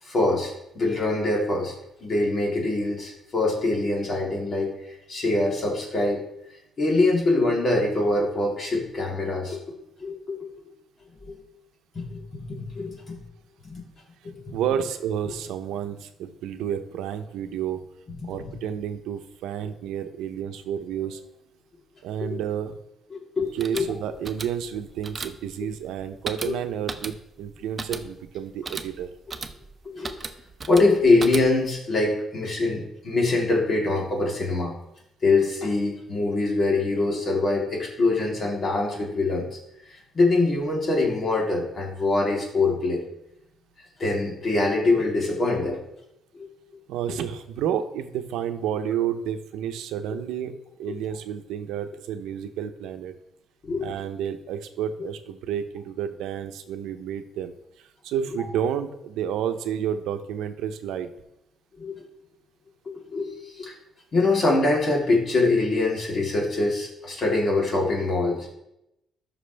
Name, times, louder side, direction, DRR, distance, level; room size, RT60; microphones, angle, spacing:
voice 1, 0.0-1.7 2.0-6.2 6.8-9.6 10.0-10.5 11.2-11.4 11.9-13.2 13.6-13.8 14.2-14.6 18.1-18.5 22.2-22.4 23.1-23.9 26.4-26.5 29.8-30.1 30.7-34.8 35.2-39.5 39.9-43.0 44.0-45.8 46.3-46.5 50.9-51.0 53.6-53.9 61.8-61.9 62.8-63.7 64.1-68.5, left 2 dB, 45° left, -2 dB, 3.3 m, -24 dB
voice 2, 14.5-17.8 18.2-21.4 22.0-22.8 23.5-29.1 46.9-53.1 53.8-61.1, right 9 dB, 90° right, 8 dB, 0.8 m, -30 dB
sound 1, 23.4-31.8, right 4 dB, 30° right, 0.8 m, -37 dB
13.0 x 6.0 x 3.4 m, 0.84 s
cardioid pair, 90°, 0 cm